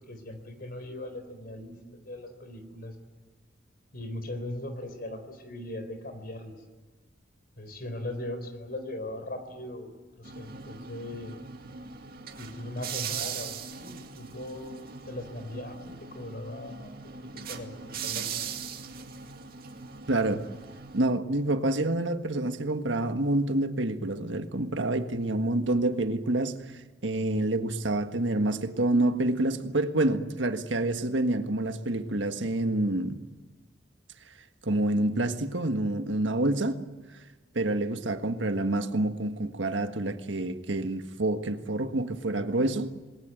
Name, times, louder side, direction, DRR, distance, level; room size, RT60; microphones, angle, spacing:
voice 1, 0.0-2.9 3.9-6.6 7.6-11.3 12.4-16.9 17.2-18.5, left 1 dB, 55° left, 4.2 m, -39 dB
sound 1, 10.2-21.0, right 7 dB, 55° right, 2.2 m, -40 dB
voice 2, 20.1-20.4 20.9-26.6 27.0-33.1 34.6-36.8 37.5-42.9, right 2 dB, 80° right, 1.6 m, -27 dB
27.5 x 20.5 x 9.2 m
head